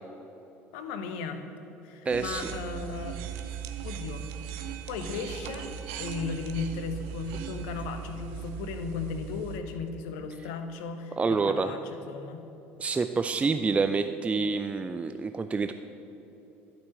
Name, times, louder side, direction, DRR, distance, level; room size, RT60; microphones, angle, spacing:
voice 1, 0.7-1.4 1.8-3.2 3.8-4.3 4.9-5.7 6.0-12.4, left 5 dB, 60° left, 7 dB, 1.0 m, -36 dB
voice 2, 2.1-2.5 11.2-11.7 12.8-15.7, right 4 dB, 15° right, 9 dB, 0.4 m, -27 dB
sound 1, 2.1-9.6, right 8 dB, 60° right, 0.7 m, -38 dB
12.5 x 6.0 x 7.5 m, 2.9 s
figure-of-eight pair, 60°, 7 cm